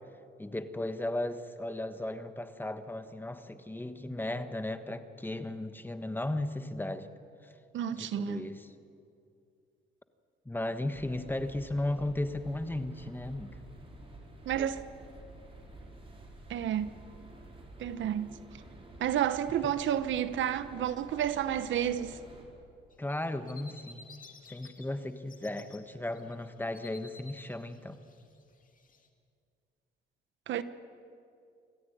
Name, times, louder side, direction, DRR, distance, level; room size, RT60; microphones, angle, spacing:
voice 1, 0.4-7.1 7.4-7.5 7.9-8.7 10.4-13.6 19.6-19.7 23.0-24.1 24.5-28.0, left 1 dB, 10° left, 1.3 m, -35 dB
voice 2, 7.7-8.4 14.4-14.8 16.5-16.9 17.8-18.3 19.0-22.2 30.5-30.6, right 10 dB, 75° right, 1.0 m, -30 dB
sound 1, 10.9-22.4, right 1 dB, 30° right, 4.9 m, -50 dB
sound 2, 22.9-24.9 25.2-25.8 26.1-29.1, left 3 dB, 40° left, 2.3 m, -53 dB
26.5 x 14.0 x 9.3 m
cardioid pair, 90°, 20 cm